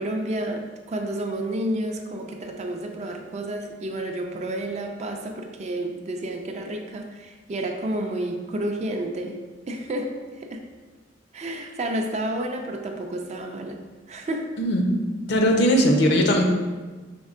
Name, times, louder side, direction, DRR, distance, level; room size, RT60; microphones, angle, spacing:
voice 1, 0.0-10.7 11.3-13.8 14.1-14.6, right 1 dB, 35° right, 4 dB, 0.4 m, -30 dB
voice 2, 14.6-15.0 15.3-16.4, equal, 65° left, 2 dB, 0.6 m, -19 dB
5.2 x 3.5 x 2.4 m, 1.3 s
head